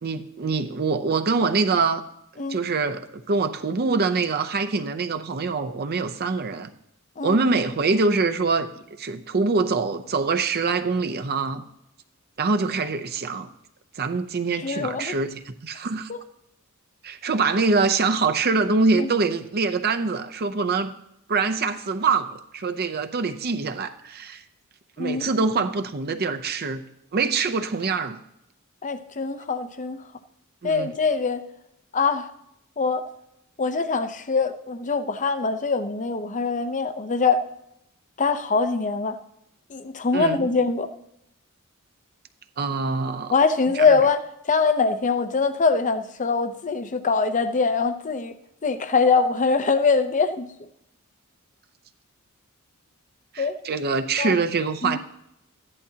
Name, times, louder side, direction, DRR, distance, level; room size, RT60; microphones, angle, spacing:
voice 1, 0.0-2.0 2.5-6.7 7.2-8.7 9.0-11.6 12.4-13.5 14.0-16.1 17.0-20.9 21.3-24.4 25.0-26.8 27.1-28.2 30.6-30.9 40.1-40.5 42.6-43.3 43.7-44.0 53.3-55.0, right 4 dB, 45° right, 8 dB, 0.6 m, -24 dB
voice 2, 14.6-15.2 16.1-16.2 19.0-19.1 25.0-25.3 28.8-30.0 30.6-31.4 31.9-32.3 32.8-33.0 33.6-37.4 38.2-39.2 39.7-40.9 43.3-44.2 44.4-48.3 48.6-50.5 53.4-53.6 54.2-54.3 54.8-55.0, left 4 dB, 35° left, 10 dB, 0.7 m, -23 dB
14.5 x 11.0 x 2.8 m, 0.81 s
head